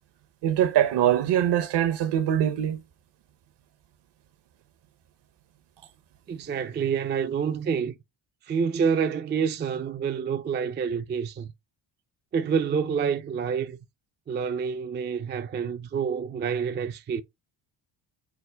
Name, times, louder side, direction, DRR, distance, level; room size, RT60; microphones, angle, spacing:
voice 1, 0.4-2.8, right 10 dB, 55° right, 0.8 m, -23 dB
voice 2, 6.3-7.9 8.5-11.5 12.3-13.8 14.3-17.2, right 6 dB, 25° right, 0.4 m, -27 dB
5.9 x 2.1 x 3.3 m
cardioid pair, 75°, 49 cm